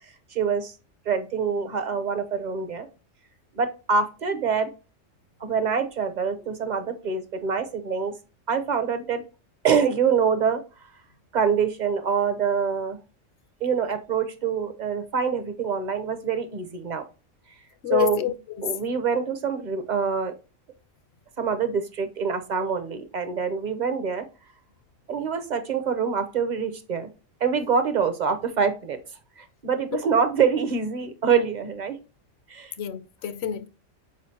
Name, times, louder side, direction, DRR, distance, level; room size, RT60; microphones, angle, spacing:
voice 1, 0.3-0.7 1.1-2.9 3.5-4.7 5.4-8.1 8.5-9.2 9.6-10.6 11.3-13.0 13.6-17.0 17.9-18.2 18.6-20.3 21.4-24.3 25.1-27.1 27.4-29.0 29.4-32.0 32.5-32.7, right 6 dB, 40° right, 0.8 m, -25 dB
voice 2, 17.8-18.7 29.9-30.0 32.8-33.7, left 11 dB, 60° left, 0.8 m, -27 dB
7.6 x 4.9 x 2.8 m
omnidirectional pair, 1.3 m